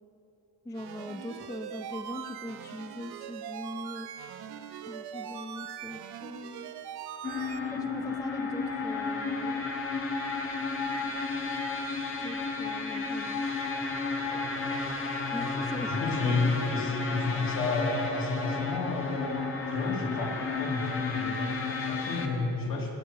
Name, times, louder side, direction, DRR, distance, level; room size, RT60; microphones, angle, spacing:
voice 1, 0.7-4.1 4.8-6.8 7.7-9.7 12.2-13.5 15.3-15.9 16.2-16.5, left 1 dB, 10° left, 7 dB, 0.4 m, -41 dB
sound 1, 0.7-7.6, right 9 dB, 80° right, 0.7 m, -41 dB
sound 2, 7.2-22.3, left 4 dB, 35° left, 1.1 m, -32 dB
voice 2, 15.4-22.9, left 3 dB, 60° left, -2 dB, 2.4 m, -31 dB
17.5 x 6.4 x 4.8 m, 3.0 s
cardioid pair, 110°, 38 cm